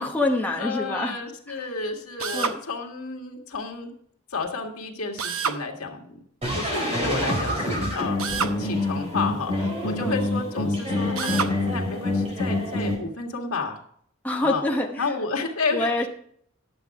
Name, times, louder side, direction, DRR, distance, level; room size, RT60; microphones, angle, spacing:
voice 1, 0.0-1.2 2.3-2.6 10.0-10.1 14.2-15.0 15.7-16.1, left 2 dB, 10° left, 0 dB, 0.9 m, -25 dB
voice 2, 0.6-3.9 4.3-6.2 6.5-13.8 14.4-14.6 15.0-16.1, left 4 dB, 90° left, 1 dB, 1.8 m, -31 dB
Drill, 2.2-2.6 5.2-5.6 8.2-8.6 11.2-11.6, right 6 dB, 75° right, 0.8 m, -27 dB
sound 1, 6.4-13.0, left 1 dB, 30° right, 4.4 m, -26 dB
11.0 x 7.5 x 4.8 m, 0.64 s
head